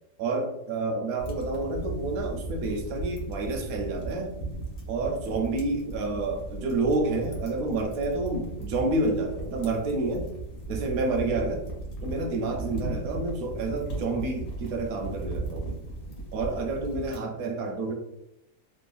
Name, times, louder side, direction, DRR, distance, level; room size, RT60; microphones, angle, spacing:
voice 1, 0.2-4.3 4.9-10.3 10.7-11.6 12.0-15.8 16.3-17.9, right 2 dB, 70° right, 4 dB, 0.9 m, -29 dB
sound 1, 1.2-17.2, right 2 dB, 60° left, 1.0 m, -37 dB
3.1 x 2.0 x 2.4 m, 0.85 s
omnidirectional pair, 1.8 m